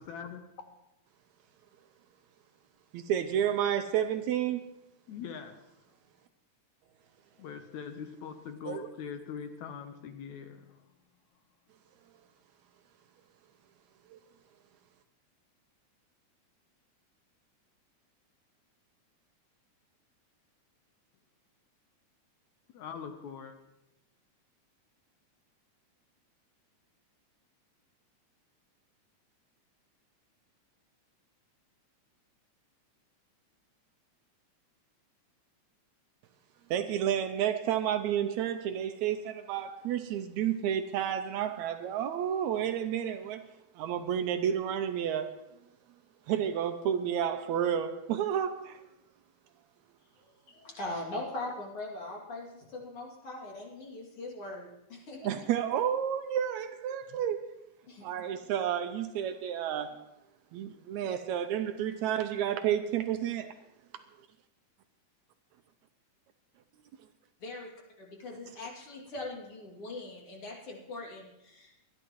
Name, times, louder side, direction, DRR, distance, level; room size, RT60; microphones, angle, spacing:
voice 1, 0.1-0.4 5.1-5.6 7.4-10.6 22.7-23.5, left 7 dB, 70° left, 2.1 m, -42 dB
voice 2, 2.9-4.6 8.7-8.9 14.1-14.2 36.7-43.4 43.8-45.3 46.3-48.8 55.2-57.6 58.0-60.0 60.5-63.5, right 9 dB, 75° right, 1.8 m, -31 dB
voice 3, 50.5-55.2 57.9-58.0 67.4-67.7 68.0-71.8, left 2 dB, 45° left, 3.4 m, -41 dB
24.5 x 11.0 x 3.1 m
omnidirectional pair, 3.6 m